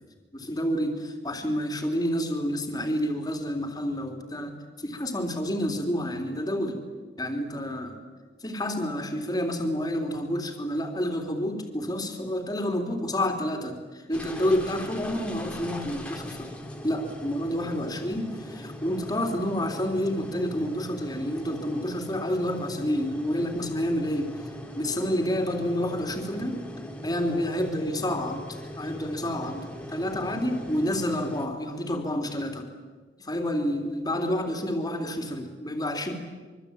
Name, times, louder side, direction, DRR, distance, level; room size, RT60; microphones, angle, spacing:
voice 1, 0.3-6.8 7.2-8.0 8.4-16.5 16.8-24.3 24.8-26.6 27.0-32.7 33.2-36.1, equal, 20° left, 4 dB, 3.5 m, -29 dB
sound 1, 14.1-31.5, left 1 dB, 5° left, 2.8 m, -40 dB
25.0 x 24.0 x 9.0 m, 1.4 s
head